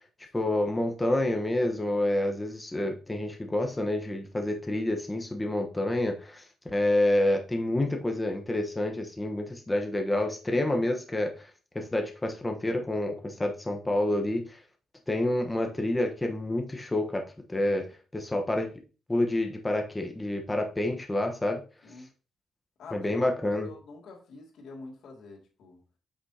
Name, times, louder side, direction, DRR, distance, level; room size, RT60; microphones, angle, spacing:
voice 1, 0.3-11.5 11.7-14.6 15.1-17.9 18.1-18.7 19.1-21.6 22.9-23.7, left 1 dB, 10° left, 3 dB, 1.1 m, -28 dB
voice 2, 22.8-25.8, left 3 dB, 75° left, 0 dB, 2.3 m, -47 dB
8.0 x 6.1 x 2.8 m, 0.35 s
cardioid pair, 140°, 0 cm